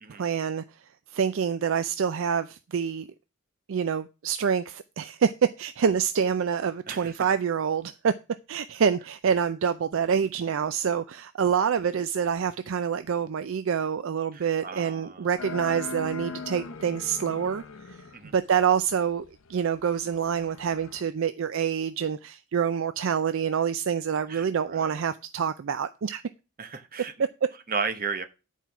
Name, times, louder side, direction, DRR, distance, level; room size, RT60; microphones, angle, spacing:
voice 1, 0.2-0.6 1.1-3.1 3.7-5.3 5.6-8.1 8.5-17.6 17.9-18.0 18.3-19.2 19.5-26.2, right 7 dB, 60° right, 0.4 m, -26 dB
voice 2, 6.9-7.3 14.3-15.4 18.1-18.3 24.3-25.0 26.6-27.1 27.7-28.2, right 5 dB, 40° right, 0.9 m, -34 dB
sound 1, 15.4-21.0, left 3 dB, 65° left, 0.7 m, -41 dB
10.0 x 4.5 x 5.8 m
head